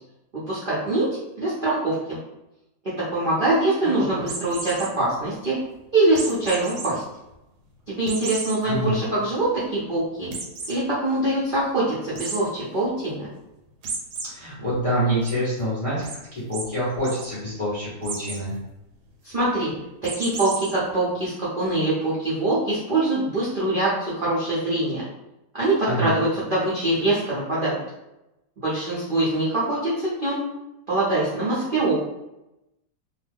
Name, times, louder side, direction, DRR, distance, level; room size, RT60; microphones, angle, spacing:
voice 1, 0.3-1.1 1.4-2.2 2.8-5.6 5.9-7.0 7.9-10.3 10.7-13.3 19.3-19.7 20.0-25.0 25.5-27.8 28.6-30.4 30.9-32.0, right 2 dB, 55° right, -9 dB, 0.5 m, -23 dB
sound 1, 4.2-4.9 6.1-6.9 7.3-7.4 8.1-8.6 9.0-9.1 9.4-9.5 10.3-10.7 12.1-12.4 13.8-14.3 14.7-15.3 16.0-16.2 16.5-16.6 16.9-17.2 18.0-18.4 20.0-20.7, right 4 dB, 75° right, 1.2 m, -33 dB
voice 2, 8.6-9.0 14.2-16.0 16.3-18.5 25.9-26.2, equal, 30° left, -9 dB, 0.6 m, -26 dB
2.8 x 2.2 x 3.4 m, 0.93 s
omnidirectional pair, 1.9 m